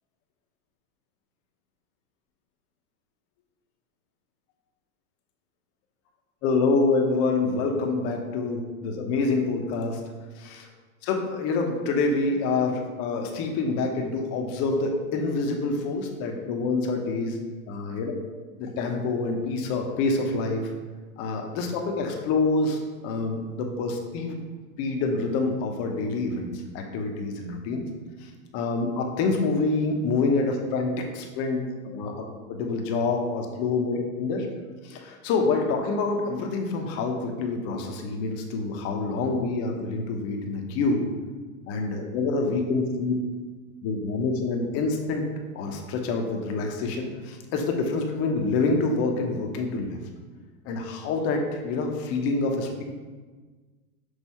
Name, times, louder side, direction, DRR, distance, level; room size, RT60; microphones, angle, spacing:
voice 1, 6.4-10.0 10.4-10.7 11.0-17.4 17.7-18.1 18.6-20.7 21.2-24.4 24.8-27.9 28.2-32.2 32.5-34.5 34.8-41.1 41.7-43.1 43.8-45.2 45.5-50.0 50.6-52.8, left 3 dB, 35° left, 2 dB, 0.9 m, -27 dB
6.4 x 2.7 x 5.5 m, 1.4 s
hypercardioid pair, 135°, 41 cm